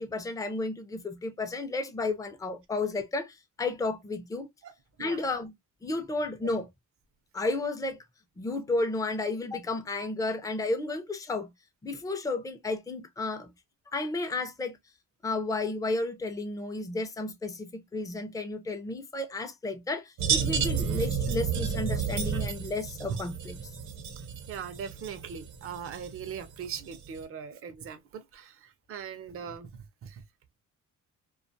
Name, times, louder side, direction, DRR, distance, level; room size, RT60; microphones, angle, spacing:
voice 1, 0.0-4.5 5.0-5.5 5.8-6.7 7.3-8.0 8.4-11.5 11.8-13.5 13.9-14.8 15.2-23.6, left 2 dB, 10° left, 0.5 m, -32 dB
sound 1, 20.2-27.2, right 6 dB, 75° right, 0.8 m, -32 dB
voice 2, 24.5-29.7 30.0-30.2, right 7 dB, 50° right, 0.6 m, -40 dB
2.4 x 2.3 x 2.5 m
cardioid pair, 90°, 30 cm